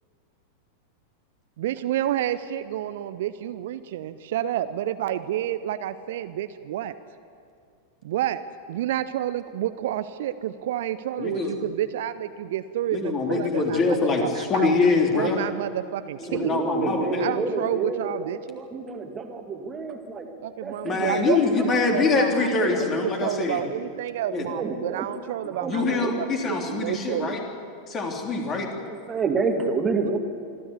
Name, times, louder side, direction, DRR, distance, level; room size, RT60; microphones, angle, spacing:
voice 1, 1.6-6.9 8.0-8.4 8.7-14.7 15.1-16.5 17.2-18.6 20.4-27.4, right 12 dB, 55° right, 12 dB, 0.7 m, -30 dB
voice 2, 11.2-11.5 12.9-15.4 16.3-17.3 20.8-23.6 24.3-24.5 25.4-27.4 27.9-28.7, left 4 dB, 30° left, 1 dB, 3.5 m, -24 dB
voice 3, 16.2-20.3 20.6-21.9 22.3-22.9 24.3-25.1 25.5-26.1 28.7-30.2, right 4 dB, 20° right, 4 dB, 2.1 m, -29 dB
25.0 x 14.5 x 8.4 m, 2.4 s
figure-of-eight pair, 90°, 0 cm